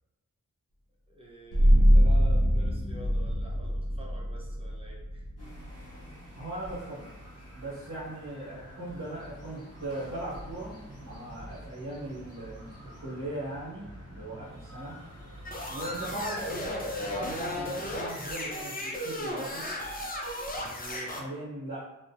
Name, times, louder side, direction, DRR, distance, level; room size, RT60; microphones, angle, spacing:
voice 1, 1.1-5.2, equal, 20° right, -4 dB, 0.7 m, -48 dB
sound 1, 1.5-12.8, equal, 80° left, 0.7 m, -27 dB
sound 2, 5.4-18.0, equal, 55° left, 1.0 m, -47 dB
voice 2, 6.4-7.1 7.5-12.7 13.0-15.0 15.7-19.7 20.5-21.9, right 1 dB, 85° right, -9 dB, 0.9 m, -39 dB
sound 3, 15.5-21.2, left 1 dB, 30° left, 0.4 m, -35 dB
2.4 x 2.0 x 2.7 m, 1.1 s
wide cardioid pair, 50°, 31 cm